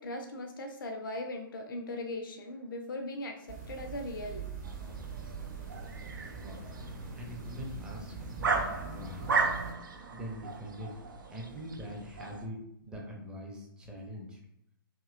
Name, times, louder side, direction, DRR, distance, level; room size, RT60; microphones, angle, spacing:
voice 1, 0.0-4.5, left 1 dB, 65° left, 4 dB, 0.4 m, -39 dB
sound 1, 3.5-9.7, right 4 dB, 45° right, 0.8 m, -42 dB
sound 2, 4.6-12.5, right 4 dB, 65° right, 0.4 m, -36 dB
voice 2, 7.2-8.2 8.5-9.4 10.1-11.0 11.3-14.4, equal, 5° right, -1 dB, 0.5 m, -43 dB
2.8 x 2.7 x 2.4 m, 0.77 s
figure-of-eight pair, 120°, 12 cm